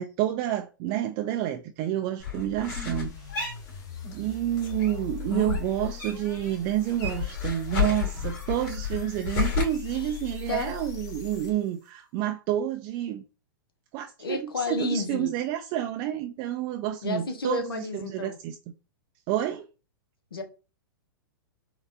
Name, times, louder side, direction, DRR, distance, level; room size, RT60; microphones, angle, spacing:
voice 1, 0.0-3.1 4.1-13.2 13.9-18.6 19.3-19.7, right 12 dB, 35° right, 0.4 m, -29 dB
sound 1, 2.2-4.3 4.6-6.4 6.7-9.6, left 7 dB, 45° left, 2.0 m, -31 dB
sound 2, 2.8-11.9, left 10 dB, 30° left, 1.0 m, -42 dB
voice 2, 14.2-15.3 17.0-18.4 20.3-20.4, left 4 dB, 85° left, 0.8 m, -31 dB
4.2 x 2.4 x 2.6 m
hypercardioid pair, 115°, 12 cm